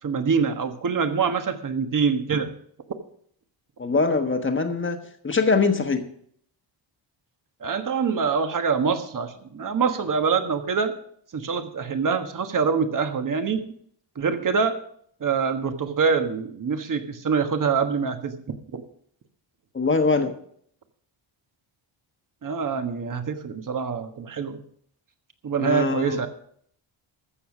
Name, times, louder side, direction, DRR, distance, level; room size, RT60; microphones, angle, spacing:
voice 1, 0.0-2.5 7.6-10.9 11.3-13.6 14.1-14.8 15.2-18.4 18.7-18.8 22.4-24.6 25.4-26.3, right 5 dB, 40° right, 7 dB, 1.4 m, -25 dB
voice 2, 3.8-5.0 5.2-6.1 19.7-20.3 25.6-26.2, left 4 dB, 25° left, 6 dB, 1.4 m, -22 dB
14.5 x 7.1 x 6.0 m, 0.64 s
cardioid pair, 130°, 50 cm